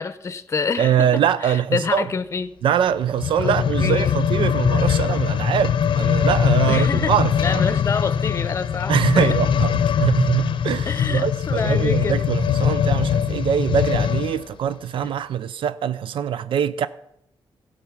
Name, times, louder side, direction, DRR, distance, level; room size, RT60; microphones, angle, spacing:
voice 1, 0.0-2.5 3.4-4.1 6.7-9.3 10.9-12.3, left 5 dB, 30° left, 0.7 m, -27 dB
voice 2, 0.8-2.1 2.6-7.8 8.9-16.9, right 9 dB, 75° right, 0.5 m, -23 dB
sound 1, 3.1-14.4 15.0-15.1, left 8 dB, 70° left, 0.6 m, -21 dB
16.0 x 6.7 x 6.0 m
wide cardioid pair, 145°, 9 cm